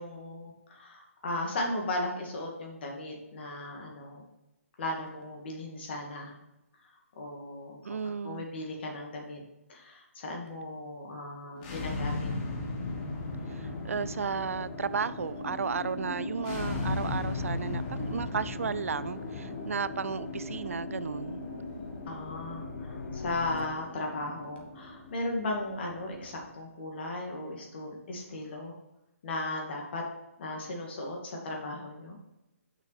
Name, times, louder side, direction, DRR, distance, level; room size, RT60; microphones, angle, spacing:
voice 1, 0.0-4.2 4.8-6.4 6.8-6.9 7.2-9.4 9.7-12.3 22.1-28.7 29.2-30.0 30.4-32.2, left 2 dB, 45° left, 0 dB, 2.3 m, -36 dB
voice 2, 7.8-8.5 13.5-21.4, right 6 dB, 70° right, 16 dB, 0.4 m, -34 dB
sound 1, 11.5-26.5, left 3 dB, 30° left, 1.6 m, -37 dB
sound 2, 19.6-24.2, left 5 dB, 75° left, 0.8 m, -45 dB
6.6 x 6.0 x 4.3 m, 0.96 s
figure-of-eight pair, 145°, 8 cm